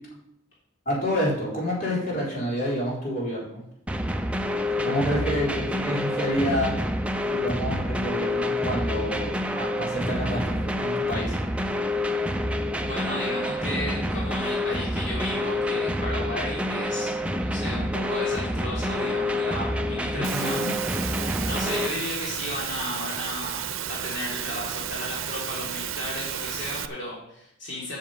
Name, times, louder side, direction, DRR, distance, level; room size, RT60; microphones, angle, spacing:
voice 1, 0.9-3.6 4.8-6.7 7.3-11.3 20.1-20.7, equal, 45° left, -6 dB, 4.0 m, -28 dB
sound 1, 3.9-21.9, left 1 dB, 5° right, 0.5 m, -27 dB
voice 2, 12.8-21.2 21.4-28.0, left 1 dB, 60° left, -6 dB, 3.4 m, -34 dB
Engine / Mechanisms, 20.2-26.9, right 9 dB, 85° right, 0.6 m, -32 dB
7.8 x 7.1 x 7.8 m, 0.77 s
head